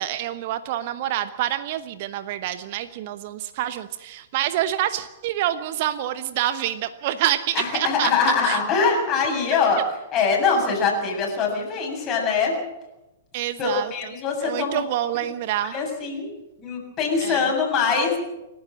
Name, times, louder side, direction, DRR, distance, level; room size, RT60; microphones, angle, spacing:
voice 1, 0.0-8.1 8.4-8.6 13.3-13.9 14.4-15.7 17.2-17.5, right 12 dB, 45° right, 12 dB, 1.0 m, -27 dB
voice 2, 7.5-9.8 10.1-12.5 13.6-14.8 15.7-16.3 16.6-18.2, left 5 dB, 25° left, 0 dB, 7.6 m, -23 dB
28.5 x 12.0 x 7.6 m, 0.99 s
figure-of-eight pair, 105°, 0 cm